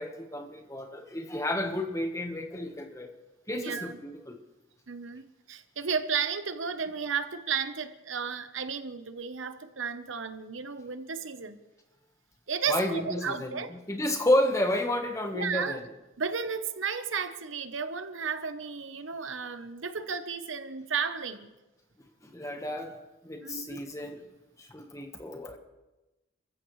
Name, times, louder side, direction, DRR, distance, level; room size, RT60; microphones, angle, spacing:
voice 1, 0.0-3.1 3.5-4.4 12.7-15.8 22.2-22.9 23.2-24.2 24.6-25.6, left 1 dB, 15° left, 4 dB, 1.3 m, -31 dB
voice 2, 3.5-4.0 4.9-11.6 12.5-13.7 15.3-15.8 16.2-21.5 23.4-23.8, right 6 dB, 75° right, 10 dB, 1.0 m, -33 dB
27.5 x 15.0 x 3.2 m, 1.1 s
head